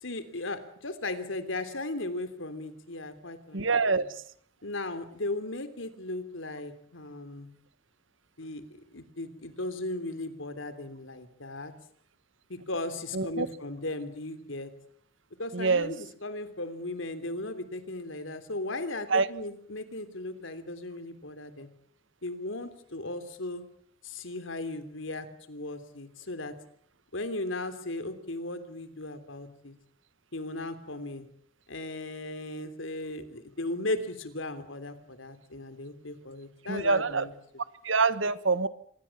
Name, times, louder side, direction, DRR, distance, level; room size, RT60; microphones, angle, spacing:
voice 1, 0.0-4.0 4.6-7.5 8.4-8.6 8.9-11.7 12.5-14.7 15.4-21.7 22.2-23.6 24.0-26.5 27.1-29.7 30.3-31.3 31.7-37.3, left 2 dB, 80° left, 10 dB, 3.3 m, -37 dB
voice 2, 3.5-4.2 13.1-13.5 15.5-15.9 19.1-19.3 36.7-37.3 37.8-38.7, right 4 dB, 75° right, 15 dB, 1.4 m, -25 dB
26.5 x 20.5 x 7.3 m, 0.62 s
head